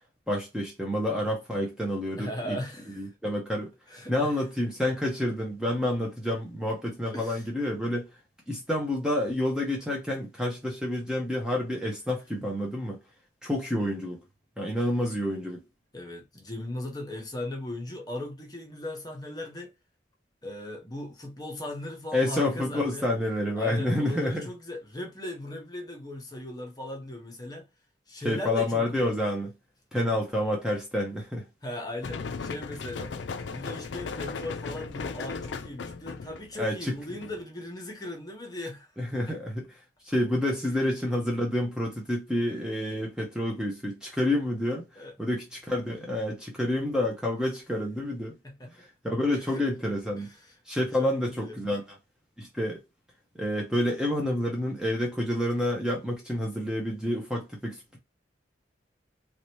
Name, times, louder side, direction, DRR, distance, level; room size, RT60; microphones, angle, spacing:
voice 1, 0.3-2.6 3.0-3.7 4.1-8.1 8.5-13.0 13.4-14.2 14.6-15.6 22.1-24.5 28.2-29.5 29.9-31.5 36.6-37.0 39.0-39.7 40.0-48.3 48.7-50.3 50.7-51.8 52.4-52.8 53.4-58.0, left 1 dB, 5° right, 0.7 m, -29 dB
voice 2, 2.2-3.1 3.9-4.3 7.1-7.5 15.9-19.7 20.4-23.1 23.6-27.7 28.1-29.1 31.6-33.1 33.5-38.9 39.3-39.4 40.6-40.7 45.0-45.1 48.4-48.9 49.3-49.6 50.2-50.5 51.0-51.5, left 1 dB, 20° left, 0.9 m, -38 dB
sound 1, 32.0-37.4, left 4 dB, 75° left, 0.4 m, -37 dB
3.3 x 2.8 x 3.0 m
head